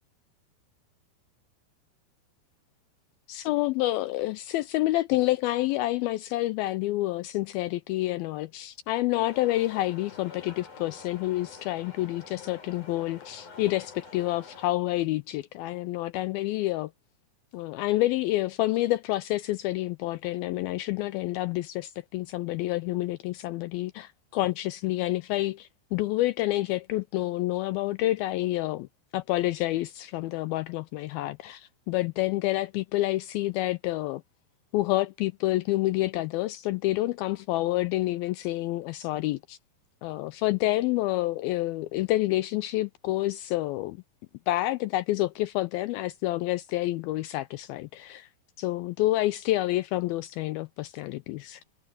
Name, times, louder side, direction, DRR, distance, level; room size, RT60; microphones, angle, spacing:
voice 1, 3.3-16.9 17.5-28.9 29.1-34.2 34.7-39.6 40.0-44.0 44.5-48.3 48.6-51.6, left 17 dB, 85° left, 2.1 m, -28 dB
sound 1, 9.1-14.7, left 5 dB, 50° left, 6.4 m, -47 dB
omnidirectional pair, 4.8 m